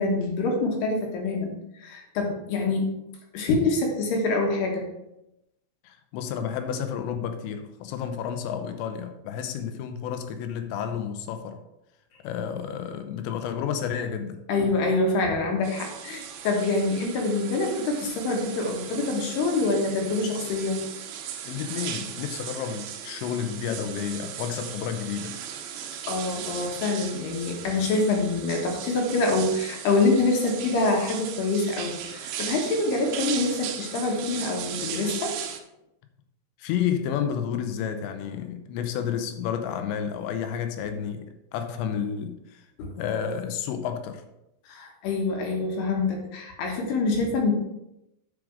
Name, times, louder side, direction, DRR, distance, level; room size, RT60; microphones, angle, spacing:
voice 1, 0.0-2.9 3.3-4.9 14.5-20.8 26.1-35.4 42.8-42.9 44.7-47.5, left 3 dB, 70° left, 1 dB, 3.1 m, -26 dB
voice 2, 5.8-11.6 12.2-14.4 21.5-25.4 36.6-41.3 41.5-42.6 43.0-44.2, left 8 dB, 90° left, 7 dB, 3.0 m, -31 dB
sound 1, 15.6-35.6, right 9 dB, 80° right, 2.9 m, -37 dB
9.5 x 5.1 x 5.1 m, 0.88 s
omnidirectional pair, 5.1 m